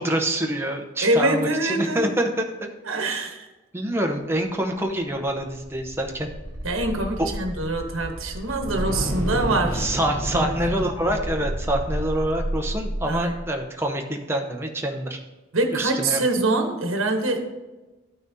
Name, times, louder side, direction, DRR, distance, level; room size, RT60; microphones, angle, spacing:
voice 1, 0.0-2.7 3.0-3.2 3.7-6.3 7.2-7.3 9.7-15.2 15.7-16.2, right 1 dB, 10° right, 3 dB, 0.7 m, -26 dB
voice 2, 1.0-2.2 2.9-3.5 6.6-9.9 10.3-10.5 11.1-11.2 13.1-13.3 15.5-17.5, right 2 dB, 80° right, 4 dB, 1.1 m, -24 dB
sound 1, 5.7-13.5, equal, 20° left, 2.7 m, -30 dB
13.0 x 5.8 x 2.7 m, 1.2 s
head